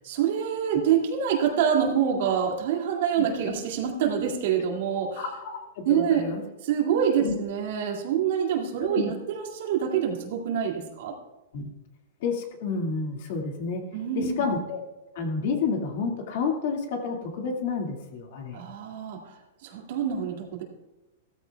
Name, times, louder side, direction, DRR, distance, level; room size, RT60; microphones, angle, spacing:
voice 1, 0.0-5.2 5.9-6.2 6.6-11.2 13.9-14.4 18.5-20.6, right 8 dB, 60° right, 1 dB, 2.1 m, -26 dB
voice 2, 5.2-5.6 5.9-6.4 7.2-7.3 8.9-9.1 11.5-11.7 12.2-13.8 14.2-14.8 15.2-18.6, left 4 dB, 55° left, 2 dB, 1.9 m, -29 dB
15.5 x 14.0 x 2.3 m, 1.1 s
supercardioid pair, 160°, 0 cm